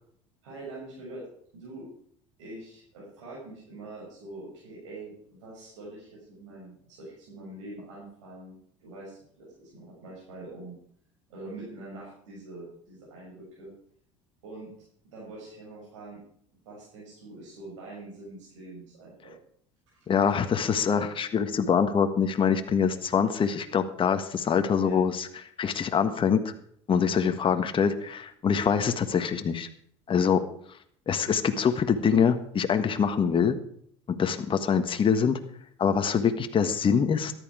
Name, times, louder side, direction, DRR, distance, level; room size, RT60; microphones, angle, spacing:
voice 1, 0.4-1.2 1.5-1.9 2.4-10.8 11.3-13.7 14.4-14.7 15.1-16.2 16.6-19.3 19.9-20.0 24.8-25.0 36.2-36.3, right 2 dB, 85° right, -6 dB, 6.5 m, -44 dB
voice 2, 20.1-25.3 25.6-26.5 26.9-29.7 30.1-30.4 31.1-33.6 34.1-35.4 35.8-37.3, left 7 dB, 35° left, 8 dB, 1.4 m, -24 dB
14.0 x 11.0 x 4.9 m, 0.64 s
hypercardioid pair, 80°, 15 cm